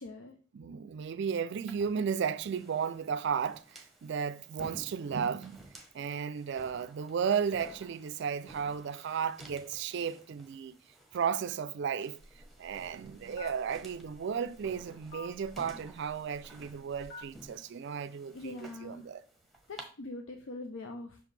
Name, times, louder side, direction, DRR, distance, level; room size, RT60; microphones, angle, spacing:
voice 1, 0.0-0.3 18.3-19.1 19.7-21.2, left 2 dB, 75° left, 0.6 m, -43 dB
voice 2, 0.5-10.8 11.1-12.2 12.6-19.2, right 7 dB, 60° right, 0.4 m, -34 dB
sound 1, 1.7-19.8, right 1 dB, ahead, 1.0 m, -55 dB
Telephone, 12.2-17.5, left 3 dB, 50° left, 1.3 m, -52 dB
6.0 x 5.0 x 3.3 m
head